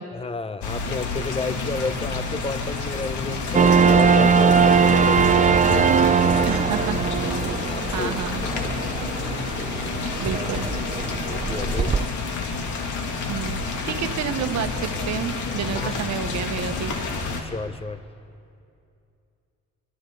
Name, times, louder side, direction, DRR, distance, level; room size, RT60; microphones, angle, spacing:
voice 1, 0.1-6.6 7.5-8.2 9.6-10.0 10.3-10.7 11.2-12.0 15.7-16.0 17.4-18.0, left 4 dB, 20° left, 14 dB, 0.7 m, -32 dB
sound 1, 0.6-17.4, left 3 dB, 75° left, 2.4 m, -29 dB
sound 2, 3.5-12.0, right 6 dB, 25° right, 0.6 m, -20 dB
voice 2, 6.4-7.0 7.2-7.5 7.9-8.4 10.2-10.7 13.3-16.9, right 8 dB, 65° right, 7 dB, 1.2 m, -30 dB
29.0 x 23.5 x 3.9 m, 2.6 s
cardioid pair, 90°, 30 cm